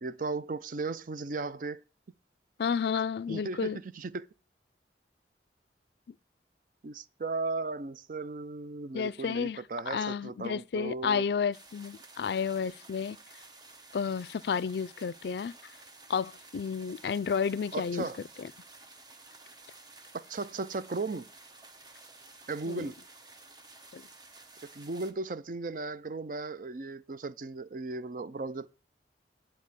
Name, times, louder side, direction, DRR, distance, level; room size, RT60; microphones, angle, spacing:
voice 1, 0.0-1.8 3.3-4.3 6.8-11.2 17.7-18.2 20.1-21.3 22.5-22.9 24.8-28.7, right 3 dB, 50° right, 0.5 m, -36 dB
voice 2, 2.6-3.8 8.9-13.2 13.9-15.7 16.1-18.1 18.4-18.5 22.7-22.9 23.9-24.1, left 6 dB, 65° left, 0.4 m, -31 dB
sound 1, 11.5-25.1, right 3 dB, 25° right, 1.0 m, -53 dB
9.6 x 4.3 x 6.8 m
head